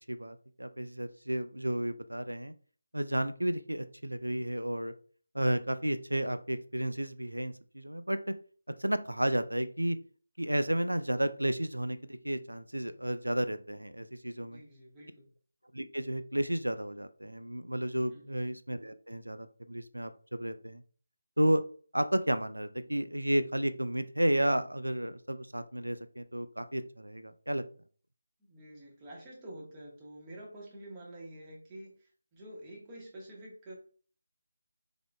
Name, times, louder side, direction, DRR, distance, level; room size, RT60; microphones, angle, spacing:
voice 1, 0.1-2.5 2.9-4.9 5.3-8.3 8.8-10.0 10.4-14.6 15.7-20.8 21.4-21.6 21.9-27.6, right 1 dB, 85° right, 11 dB, 0.3 m, -32 dB
voice 2, 14.4-15.3 18.1-18.4 28.4-33.7, right 1 dB, 15° right, -4 dB, 1.0 m, -48 dB
3.6 x 3.4 x 2.3 m, 0.43 s
figure-of-eight pair, 155°, 0 cm